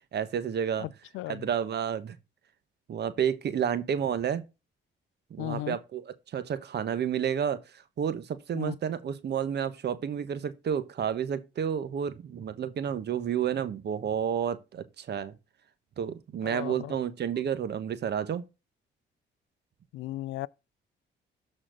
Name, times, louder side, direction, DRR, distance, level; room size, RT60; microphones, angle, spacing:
voice 1, 0.1-0.9 1.3-2.2 2.9-4.4 5.3-6.1 6.3-15.3 16.0-18.4, right 8 dB, 55° right, 1.2 m, -30 dB
voice 2, 0.8-1.5 5.4-5.8 8.5-8.8 16.4-17.0 17.4-17.5 19.9-20.5, left 15 dB, 85° left, 0.4 m, -36 dB
13.0 x 4.3 x 3.9 m
cardioid pair, 90°, 20 cm